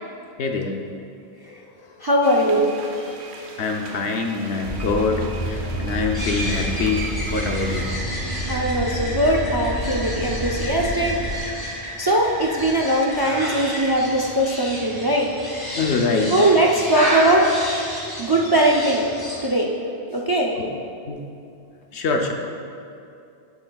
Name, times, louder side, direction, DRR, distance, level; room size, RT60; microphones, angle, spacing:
voice 1, 0.4-0.8 3.6-7.0 7.3-7.9 15.7-16.5 20.6-20.7 21.1-21.2 21.9-22.3, left 4 dB, 80° left, 3 dB, 1.0 m, -24 dB
voice 2, 2.0-2.7 8.5-11.6 12.0-15.3 16.3-17.5 18.2-19.0 19.4-19.7 20.1-20.5, right 1 dB, 35° right, -1 dB, 0.4 m, -20 dB
sound 1, 2.2-8.0, right 3 dB, 85° right, 1.0 m, -40 dB
sound 2, 4.7-11.4, equal, 40° left, 1.4 m, -29 dB
sound 3, 6.1-19.4, equal, 20° left, 1.7 m, -31 dB
10.5 x 7.8 x 2.3 m, 2.6 s
omnidirectional pair, 1.1 m